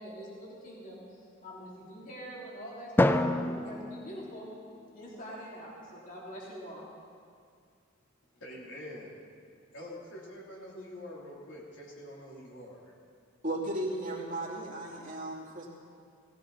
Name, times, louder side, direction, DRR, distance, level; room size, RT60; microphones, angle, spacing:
voice 1, 0.0-4.5 4.9-6.9, equal, 40° left, -5 dB, 3.3 m, -45 dB
Drum, 3.0-5.3, left 1 dB, 10° left, 0.4 m, -29 dB
voice 2, 8.3-9.1 9.7-12.9, left 1 dB, 70° left, -4 dB, 3.3 m, -45 dB
voice 3, 13.4-15.7, right 1 dB, 40° right, -4 dB, 2.7 m, -35 dB
18.0 x 16.0 x 4.1 m, 2.2 s
head